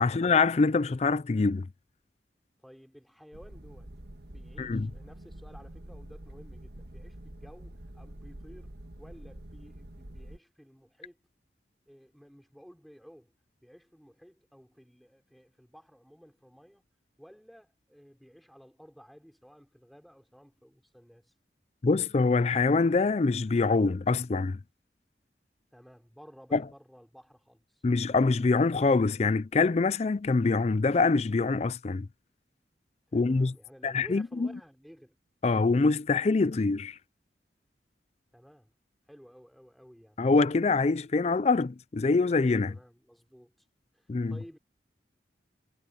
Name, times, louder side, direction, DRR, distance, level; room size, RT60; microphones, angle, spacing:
voice 1, 0.0-1.7 4.6-4.9 21.8-24.6 26.5-26.6 27.8-32.1 33.1-33.5 33.8-34.5 35.4-37.0 40.2-42.7 44.1-44.4, left 3 dB, 35° left, 0.4 m, -25 dB
voice 2, 2.6-3.9 4.3-11.2 11.9-13.3 13.6-16.8 17.2-21.3 25.7-27.8 33.1-35.2 38.3-38.7 39.1-40.2 42.6-43.6 43.9-44.6, equal, ahead, 4.2 m, -54 dB
sound 1, 3.3-10.4, right 1 dB, 65° right, 1.8 m, -46 dB
head